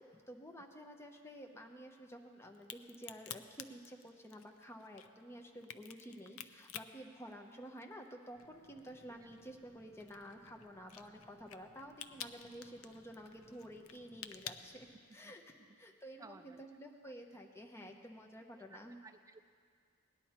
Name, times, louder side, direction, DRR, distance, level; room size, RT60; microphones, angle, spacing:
voice 1, 0.0-15.4 15.8-19.0, equal, 10° left, 2 dB, 0.9 m, -51 dB
Crack, 2.5-8.1 8.4-15.4, left 9 dB, 75° left, 0.5 m, -50 dB
sound 1, 8.3-14.9, equal, 35° left, 3.2 m, -66 dB
voice 2, 16.2-16.6 17.0-17.1 18.7-19.4, right 3 dB, 15° right, 9 dB, 0.3 m, -57 dB
18.5 x 10.5 x 4.4 m, 2.1 s
head